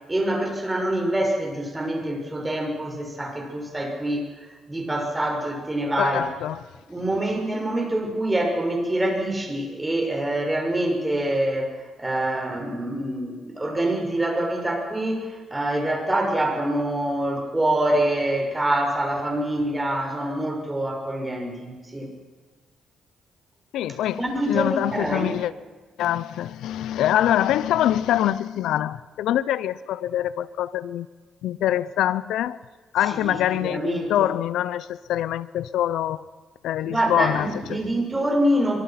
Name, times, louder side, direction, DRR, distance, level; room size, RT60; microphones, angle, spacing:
voice 1, 0.1-4.3 4.7-6.2 6.9-22.1 24.2-25.4 33.1-34.3 36.9-38.8, right 1 dB, 15° right, 6.7 m, -25 dB
voice 2, 6.0-6.7 23.7-25.5 26.0-31.1 31.4-32.6 32.9-36.2 36.6-37.8, left 12 dB, 85° left, 0.8 m, -24 dB
24.5 x 24.0 x 6.0 m
cardioid pair, 90°, 0 cm